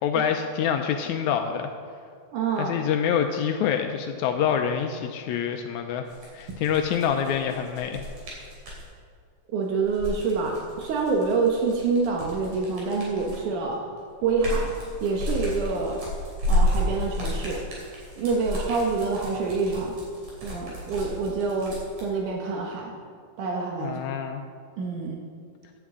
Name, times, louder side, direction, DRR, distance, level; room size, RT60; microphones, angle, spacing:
voice 1, 0.0-1.7 2.6-8.1 23.8-24.4, left 8 dB, 80° left, 5 dB, 1.9 m, -26 dB
voice 2, 2.3-2.8 6.5-6.6 9.5-13.8 14.2-14.7 15.0-16.0 16.5-17.6 18.2-20.0 20.4-22.9 23.4-24.0 24.8-25.2, right 4 dB, 85° right, 0 dB, 2.6 m, -26 dB
sound 1, 6.1-8.8 9.8-13.5 14.0-22.0, left 1 dB, 65° right, 4.2 m, -31 dB
15.5 x 10.5 x 3.7 m, 2.1 s
omnidirectional pair, 3.5 m